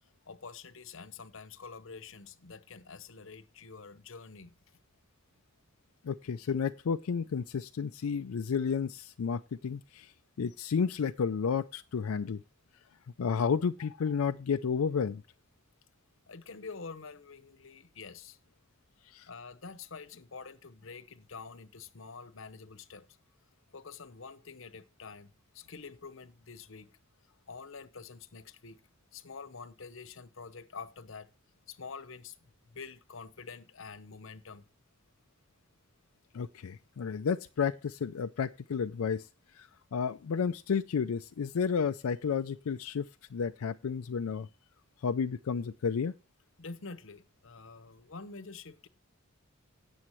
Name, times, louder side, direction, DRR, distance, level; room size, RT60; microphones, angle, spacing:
voice 1, 0.3-4.5 16.3-18.4 19.3-23.1 23.7-26.9 27.5-28.8 29.1-31.3 31.7-34.7 46.6-48.9, left 4 dB, 60° left, 0.9 m, -47 dB
voice 2, 6.0-10.1 10.4-12.4 13.2-15.2 19.1-19.3 36.3-39.3 39.5-44.5 45.0-46.1, left 6 dB, 85° left, 0.4 m, -32 dB
17.5 x 7.1 x 3.1 m
head